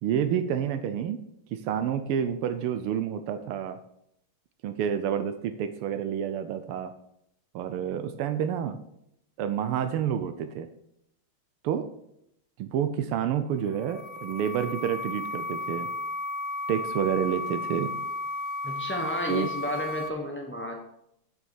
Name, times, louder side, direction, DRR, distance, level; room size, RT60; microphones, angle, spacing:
voice 1, 0.0-1.2 1.5-3.8 4.6-6.9 7.5-8.8 9.4-10.7 11.6-11.9 12.6-15.9 16.7-17.9 19.3-19.5, right 9 dB, 85° right, 9 dB, 1.6 m, -29 dB
sound 1, 13.6-20.1, left 2 dB, 70° left, 1.6 m, -34 dB
voice 2, 18.6-20.7, left 1 dB, 15° left, 1 dB, 0.4 m, -32 dB
7.9 x 6.4 x 7.0 m, 0.76 s
omnidirectional pair, 2.4 m